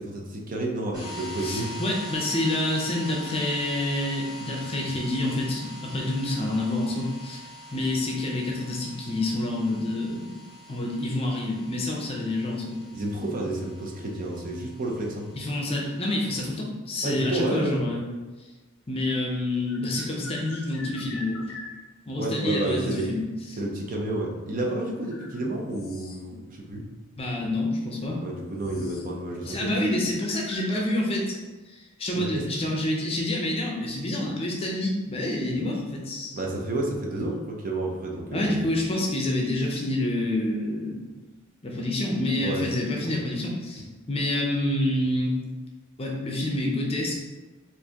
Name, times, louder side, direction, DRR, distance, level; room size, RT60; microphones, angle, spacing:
voice 1, 0.0-1.8 12.9-15.3 17.0-17.8 22.2-23.1 23.6-26.9 28.2-29.7 32.1-32.5 36.3-38.7 42.4-42.7 43.0-43.2, right 2 dB, 40° right, 0 dB, 0.6 m, -30 dB
sound 1, 0.9-16.5, left 1 dB, 20° right, 1.2 m, -43 dB
voice 2, 1.4-10.3 10.7-12.8 15.3-18.0 18.9-21.5 22.1-23.2 27.2-28.2 29.4-31.3 31.7-36.4 38.3-41.0 41.6-45.4 46.0-47.2, left 1 dB, 25° left, -1 dB, 0.6 m, -28 dB
sound 2, 18.4-18.5 19.6-21.8 22.6-23.2 24.3-24.4 25.0-26.4 26.7-26.8 27.6-27.7 28.0-29.1 29.4-29.7 30.2-30.7, left 2 dB, 70° left, 0.5 m, -44 dB
4.4 x 2.6 x 2.9 m, 1.2 s
head